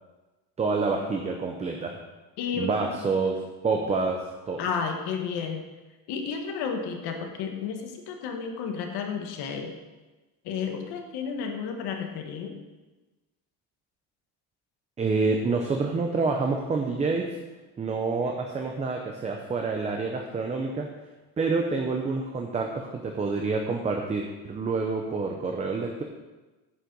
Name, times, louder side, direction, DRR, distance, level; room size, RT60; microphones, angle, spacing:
voice 1, 0.6-2.0 2.6-4.7 15.0-17.4 17.8-20.9 21.4-26.0, right 4 dB, 15° right, 2 dB, 0.6 m, -28 dB
voice 2, 2.4-3.0 4.6-5.6 6.1-9.7 10.4-12.5, left 6 dB, 65° left, 3 dB, 1.5 m, -32 dB
9.6 x 6.5 x 5.2 m, 1.2 s
cardioid pair, 155°, 43 cm